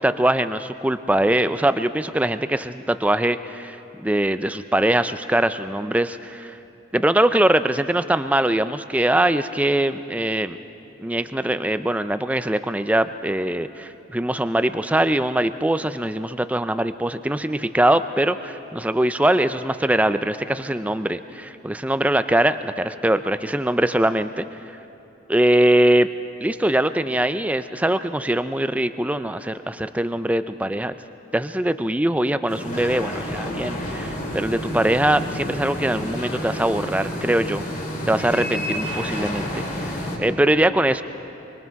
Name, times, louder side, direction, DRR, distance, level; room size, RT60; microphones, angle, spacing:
voice 1, 0.0-6.6 6.9-10.6 11.0-24.4 25.3-26.1 26.4-30.9 31.3-37.6 38.1-41.0, right 1 dB, 5° right, 11 dB, 0.4 m, -22 dB
sound 1, 32.5-40.2, left 1 dB, 35° left, 2.9 m, -30 dB
25.0 x 24.5 x 4.7 m, 3.0 s
head